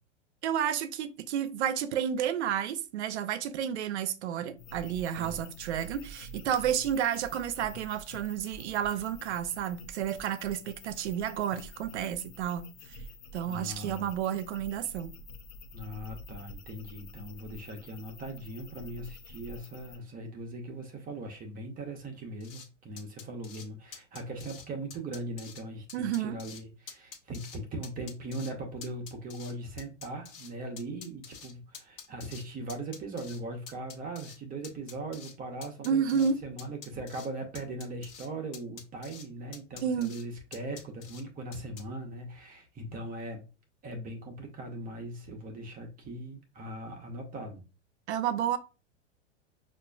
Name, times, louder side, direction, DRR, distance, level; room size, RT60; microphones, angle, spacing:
voice 1, 0.4-13.0 13.3-15.1 25.9-26.4 35.8-36.4 39.8-40.1 48.1-48.6, right 9 dB, 65° right, 0.6 m, -31 dB
sound 1, 4.6-20.0, left 1 dB, 25° left, 0.3 m, -48 dB
voice 2, 13.5-14.1 15.7-43.5 43.8-47.6, right 2 dB, 25° right, 0.7 m, -40 dB
sound 2, 22.4-22.7 23.0-23.7 23.9-24.7 24.9-25.6 25.9-26.6 26.9-27.6 27.8-28.5 28.8-30.5 30.8-32.4 32.7-33.4 33.7-34.4 34.6-35.3 35.6-36.3 36.6-37.3 37.6-38.3 38.5-39.3 39.5-40.2 40.5-41.2 41.5-41.8, left 7 dB, 45° left, 1.2 m, -47 dB
5.8 x 2.5 x 2.3 m
hypercardioid pair, 100°, 36 cm